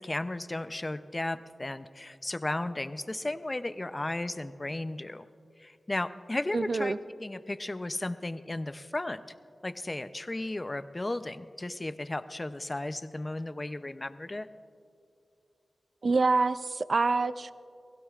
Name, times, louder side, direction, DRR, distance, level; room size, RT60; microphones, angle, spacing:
voice 1, 0.0-5.2 5.6-9.2 9.6-14.5, left 2 dB, 30° left, 12 dB, 0.6 m, -35 dB
voice 2, 6.5-7.0 16.0-17.5, right 3 dB, 60° right, 14 dB, 0.4 m, -26 dB
28.0 x 17.0 x 2.5 m, 2.5 s
cardioid pair, 45°, 0 cm